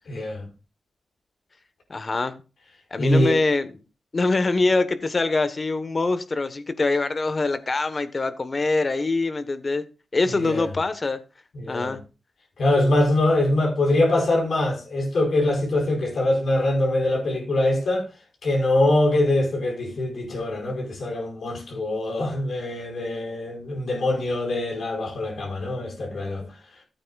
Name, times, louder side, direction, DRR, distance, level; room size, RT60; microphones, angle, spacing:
voice 1, 0.1-0.5 3.0-3.4 10.2-10.7 11.5-12.0 12.6-18.1 18.4-26.5, left 1 dB, 70° left, 4.9 m, -23 dB
voice 2, 1.9-2.4 2.9-3.7 4.1-9.8 10.1-11.2 11.7-12.0 26.4-26.5, left 3 dB, 40° left, 1.2 m, -24 dB
15.0 x 8.7 x 2.4 m
wide cardioid pair, 90°, 0 cm